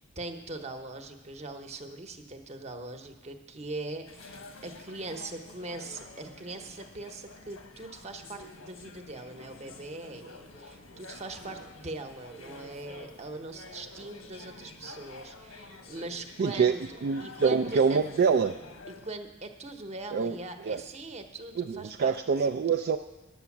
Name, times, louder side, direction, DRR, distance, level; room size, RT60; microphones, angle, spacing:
voice 1, 0.0-16.8 17.2-18.0 18.9-22.5, right 2 dB, 35° right, 5 dB, 1.0 m, -41 dB
sound 1, 4.1-19.1, left 2 dB, 85° left, 1.3 m, -49 dB
voice 2, 16.4-16.7 17.0-18.5 20.1-20.4 20.6-20.8 21.6-23.0, right 5 dB, 50° right, 4 dB, 0.4 m, -25 dB
10.5 x 7.9 x 7.2 m, 1.1 s
head